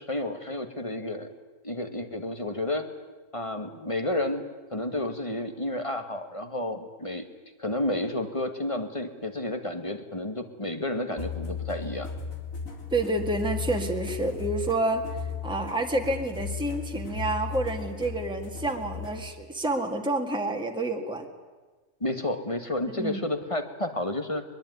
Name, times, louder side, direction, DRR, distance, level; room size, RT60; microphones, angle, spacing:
voice 1, 0.0-1.3 1.6-2.9 3.3-4.4 4.7-7.2 7.6-12.1 22.0-24.4, left 1 dB, 25° left, 7 dB, 1.8 m, -31 dB
sound 1, 11.2-19.2, left 6 dB, 80° left, 3.9 m, -36 dB
voice 2, 12.9-15.1 15.4-21.3 22.9-23.2, right 2 dB, 5° right, 3 dB, 2.0 m, -29 dB
22.5 x 21.5 x 9.5 m, 1.3 s
omnidirectional pair, 1.4 m